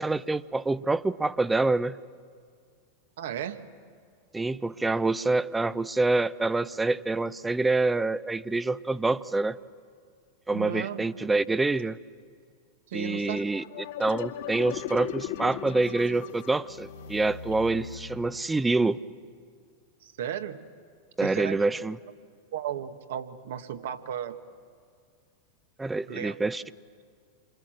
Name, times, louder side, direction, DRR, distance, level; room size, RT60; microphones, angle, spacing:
voice 1, 0.0-2.0 4.3-9.6 10.5-12.0 12.9-13.6 14.0-19.0 21.2-22.0 25.8-26.6, right 3 dB, 10° right, 17 dB, 0.7 m, -26 dB
voice 2, 3.2-3.7 10.5-11.1 12.9-13.4 20.0-20.7 21.2-21.7 22.5-24.4 26.1-26.4, right 9 dB, 65° right, 8 dB, 1.6 m, -35 dB
sound 1, 13.3-18.7, left 9 dB, 65° left, 2.3 m, -38 dB
29.0 x 25.0 x 7.8 m, 2.1 s
figure-of-eight pair, 90°, 0 cm